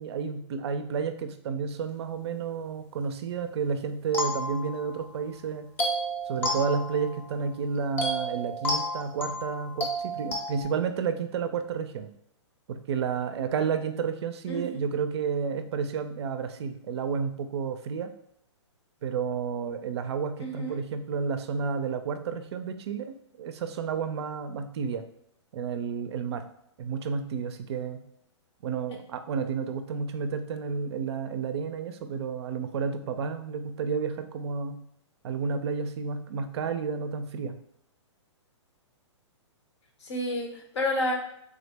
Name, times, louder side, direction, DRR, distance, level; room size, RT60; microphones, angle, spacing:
voice 1, 0.0-5.7 6.3-12.1 12.7-18.1 19.0-25.0 25.5-26.4 26.8-28.0 28.6-34.8 35.2-37.6, right 6 dB, 60° right, 9 dB, 0.4 m, -31 dB
sound 1, 4.1-5.2 5.8-7.5 8.0-10.6, equal, 10° left, 0.5 m, -31 dB
voice 2, 20.4-20.8 40.0-41.1, left 1 dB, 65° left, 1 dB, 0.9 m, -30 dB
3.4 x 2.0 x 3.3 m, 0.74 s
hypercardioid pair, 140°, 16 cm